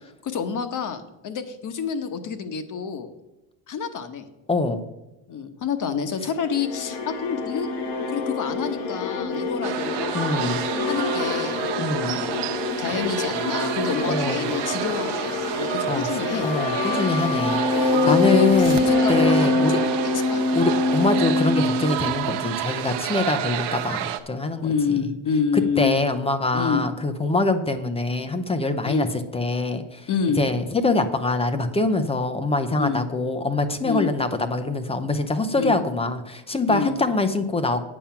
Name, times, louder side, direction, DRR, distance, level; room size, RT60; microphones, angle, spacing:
voice 1, 0.2-3.1 3.7-4.3 5.3-7.7 8.1-10.3 10.8-11.6 12.0-12.4 12.8-16.5 17.7-20.4 24.6-26.0 26.5-26.8 28.8-29.1 30.1-30.4 32.8-33.0 33.8-34.1 35.5-35.7 36.7-37.0, left 6 dB, 40° left, 9 dB, 1.0 m, -28 dB
voice 2, 4.5-4.8 10.1-10.6 11.8-12.1 12.6-12.7 14.1-14.4 15.9-16.1 16.4-18.8 19.1-19.8 20.5-24.7 25.8-29.1 29.3-30.0 30.4-37.8, left 3 dB, 10° left, 8 dB, 0.5 m, -24 dB
sound 1, 6.3-22.6, left 2 dB, 85° left, 1.9 m, -25 dB
sound 2, 9.6-24.2, right 11 dB, 55° right, 0.8 m, -30 dB
8.9 x 7.1 x 5.7 m, 1.0 s
cardioid pair, 145°, 50 cm